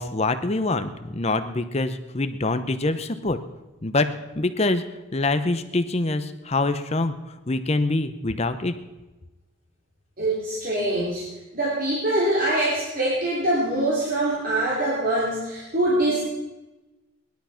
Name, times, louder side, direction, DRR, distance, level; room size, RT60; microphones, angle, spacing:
voice 1, 0.0-3.4 3.8-4.1 4.3-4.8 5.1-7.1 7.5-8.7, left 2 dB, 30° left, 10 dB, 0.7 m, -25 dB
voice 2, 10.2-11.3 11.5-16.2, right 1 dB, 45° right, -6 dB, 3.4 m, -24 dB
19.0 x 11.5 x 5.8 m, 1.1 s
head